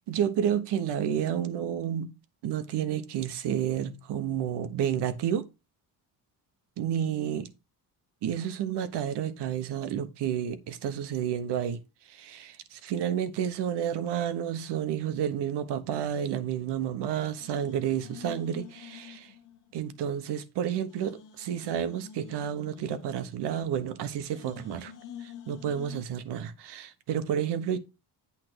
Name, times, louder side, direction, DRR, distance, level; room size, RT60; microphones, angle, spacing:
voice 1, 0.1-2.1 2.4-5.4 6.8-7.5 8.2-11.8 12.0-19.3 19.7-24.9 25.2-27.8, right 9 dB, 85° right, 1.1 m, -30 dB
sound 1, 16.4-17.1 17.4-20.0 20.3-20.4 20.8-23.9 24.3-26.0, left 9 dB, 50° left, 1.3 m, -48 dB
8.6 x 3.3 x 6.1 m
cardioid pair, 160°, 40 cm